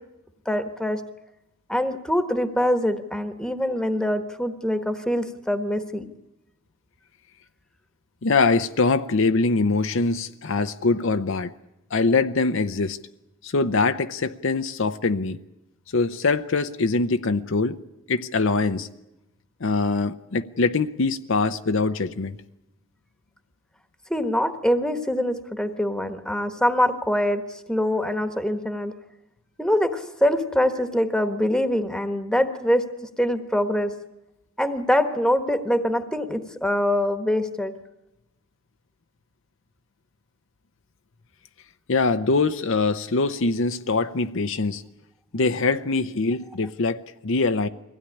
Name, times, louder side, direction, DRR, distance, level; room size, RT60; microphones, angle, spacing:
voice 1, 0.4-1.0 1.7-6.0 24.1-28.9 29.6-32.9 33.2-33.9 34.6-37.7, left 1 dB, 5° left, 1.3 m, -24 dB
voice 2, 8.2-11.5 11.9-13.0 13.4-15.4 15.9-17.8 18.1-18.9 19.6-22.4 41.9-44.8 45.3-47.7, left 3 dB, 65° left, 0.7 m, -23 dB
22.5 x 16.5 x 9.9 m
head